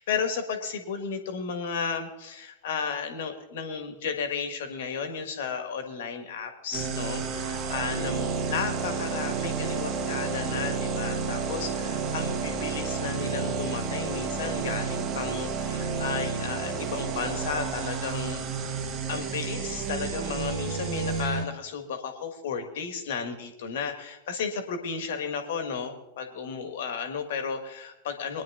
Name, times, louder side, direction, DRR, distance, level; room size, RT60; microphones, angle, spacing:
voice 1, 0.0-18.7 19.1-28.4, left 6 dB, 55° left, 6 dB, 1.7 m, -33 dB
sound 1, 6.7-21.5, right 5 dB, 35° right, 1.1 m, -31 dB
24.0 x 10.0 x 2.5 m, 0.92 s
figure-of-eight pair, 90°, 0 cm